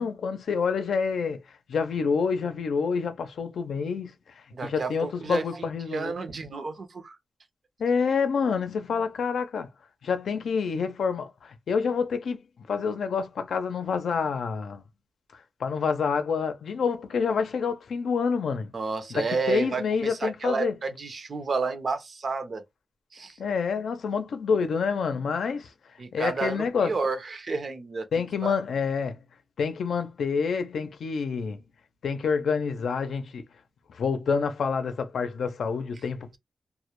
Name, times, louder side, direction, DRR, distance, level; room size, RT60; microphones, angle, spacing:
voice 1, 0.0-1.4 1.7-4.1 4.6-6.1 7.8-9.7 10.0-12.4 12.7-14.8 15.6-18.7 19.1-20.7 23.4-25.7 26.1-26.9 28.1-29.2 29.6-31.6 32.0-33.5 33.9-36.4, left 5 dB, 85° left, 0.5 m, -27 dB
voice 2, 4.5-7.2 18.7-22.6 23.1-23.4 26.0-28.1 28.4-28.5, right 4 dB, 50° right, 0.6 m, -31 dB
2.1 x 2.1 x 2.9 m
wide cardioid pair, 130°, 0 cm